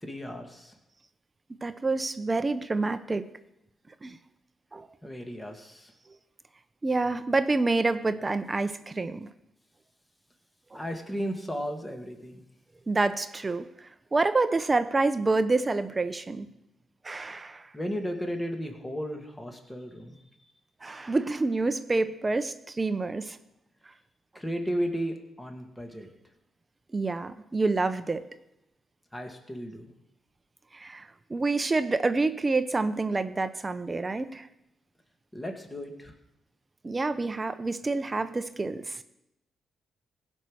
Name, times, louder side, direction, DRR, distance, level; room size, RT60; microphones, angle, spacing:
voice 1, 0.0-0.7 5.0-5.9 10.7-12.4 17.7-20.2 24.3-26.1 29.1-29.9 35.3-36.1, equal, 15° left, 3 dB, 2.1 m, -34 dB
voice 2, 1.6-3.2 4.0-4.2 4.7-4.9 6.8-9.3 10.7-10.8 12.9-13.7 14.1-16.5 17.0-17.7 20.8-23.4 26.9-28.2 30.7-34.5 36.8-39.0, right 3 dB, 25° right, 11 dB, 0.7 m, -27 dB
16.5 x 5.5 x 6.4 m, 0.86 s
cardioid pair, 75°, 0 cm